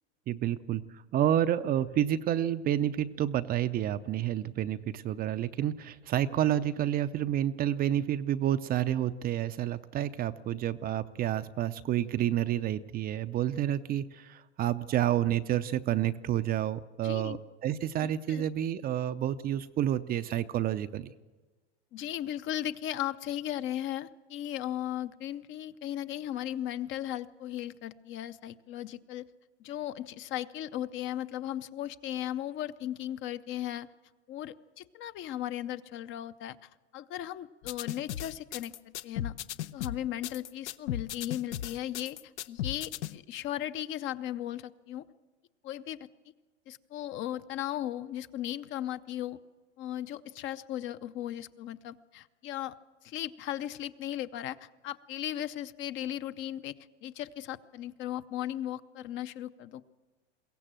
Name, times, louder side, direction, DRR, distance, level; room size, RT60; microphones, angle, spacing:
voice 1, 0.3-21.1, right 11 dB, 25° right, 12 dB, 0.5 m, -29 dB
voice 2, 17.0-17.4 18.0-18.4 21.9-29.3 29.6-33.9 34.3-38.7 39.0-39.3 39.7-42.2 42.5-45.1 45.6-46.0 46.7-49.4 49.8-52.7 53.0-56.7 57.0-59.8, left 12 dB, 35° left, 13 dB, 0.7 m, -36 dB
sound 1, 37.6-43.1, left 12 dB, 85° left, 0.8 m, -36 dB
22.0 x 16.5 x 7.6 m, 1.3 s
supercardioid pair, 125°, 34 cm